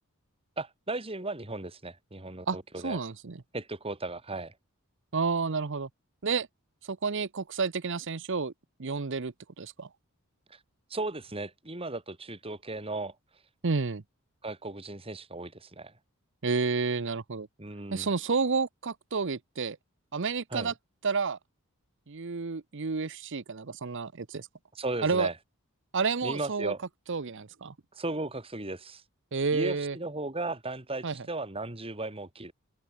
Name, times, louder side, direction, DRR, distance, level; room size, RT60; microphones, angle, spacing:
voice 1, 0.6-3.0 3.5-4.5 10.5-10.6 10.9-13.1 14.4-15.9 17.6-18.1 20.5-20.7 24.7-25.3 26.2-26.8 27.9-29.0 29.5-32.5, right 2 dB, 25° right, 2.8 m, -36 dB
voice 2, 2.8-3.4 5.1-5.9 6.2-6.5 6.9-8.5 8.8-9.9 13.6-14.0 16.4-17.5 17.9-19.8 20.1-20.7 21.0-21.4 22.1-24.5 25.0-25.3 25.9-26.7 27.1-27.7 29.3-30.0 31.0-31.2, right 4 dB, 55° right, 0.8 m, -30 dB
open air
head